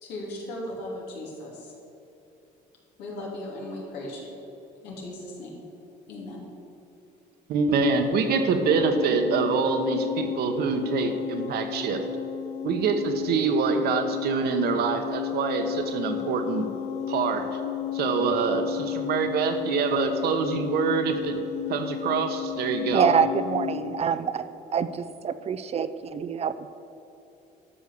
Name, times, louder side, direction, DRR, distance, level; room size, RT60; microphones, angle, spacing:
voice 1, 0.0-1.7 3.0-4.3 4.8-5.6 6.1-6.5, left 1 dB, 90° left, -3 dB, 3.1 m, -37 dB
voice 2, 7.5-12.0 12.6-16.6 17.1-17.5 17.9-21.4 21.7-23.1, right 5 dB, 70° right, 6 dB, 1.2 m, -25 dB
sound 1, 8.6-24.0, left 12 dB, 70° left, 0.5 m, -33 dB
voice 3, 22.9-24.5 24.7-26.7, right 7 dB, 40° right, 13 dB, 0.5 m, -26 dB
12.5 x 6.4 x 6.9 m, 3.0 s
cardioid pair, 110°, 17 cm